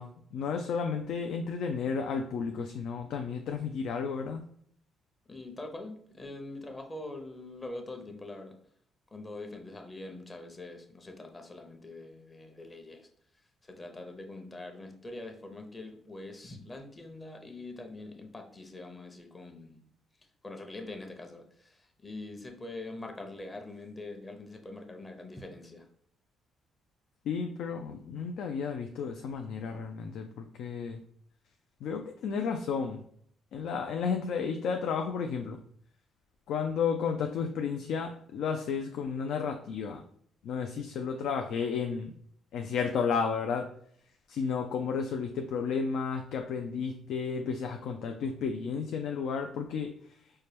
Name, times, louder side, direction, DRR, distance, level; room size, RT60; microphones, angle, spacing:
voice 1, 0.0-4.4 27.3-31.0 31.8-33.0 33.5-35.6 36.5-40.0 40.4-42.1 42.5-43.7 44.3-49.9, left 6 dB, 75° left, 5 dB, 0.3 m, -32 dB
voice 2, 5.3-8.5 9.1-13.1 13.8-19.8 20.4-21.8 22.0-25.8, left 2 dB, 25° left, 4 dB, 0.7 m, -43 dB
4.3 x 2.2 x 3.3 m, 0.63 s
cardioid pair, 80°, 0 cm